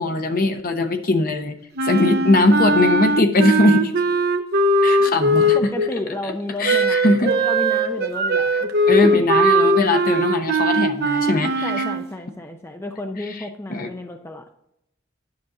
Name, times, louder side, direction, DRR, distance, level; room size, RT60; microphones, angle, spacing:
voice 1, 0.0-1.6 1.8-3.9 4.8-5.7 6.6-7.3 8.9-11.7 13.7-13.9, left 2 dB, 45° left, 6 dB, 0.9 m, -20 dB
Wind instrument woodwind instrument, 1.8-5.9 6.6-12.0, right 1 dB, 55° right, 0.7 m, -19 dB
voice 2, 5.5-9.3 11.6-14.4, left 2 dB, 15° left, 5 dB, 0.5 m, -31 dB
9.8 x 6.2 x 3.8 m, 0.81 s
head